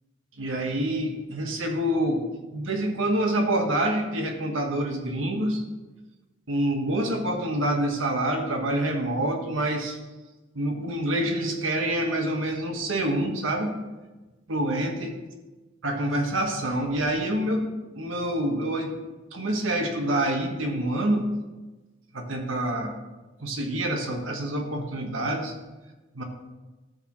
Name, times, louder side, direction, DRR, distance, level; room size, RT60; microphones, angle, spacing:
voice 1, 0.4-5.6 6.5-10.0 10.5-13.8 14.5-15.1 15.8-18.9 19.3-21.3 22.1-22.9 23.4-25.5 26.1-26.2, right 1 dB, 90° right, 3 dB, 1.4 m, -27 dB
13.5 x 6.7 x 3.2 m, 1.1 s
head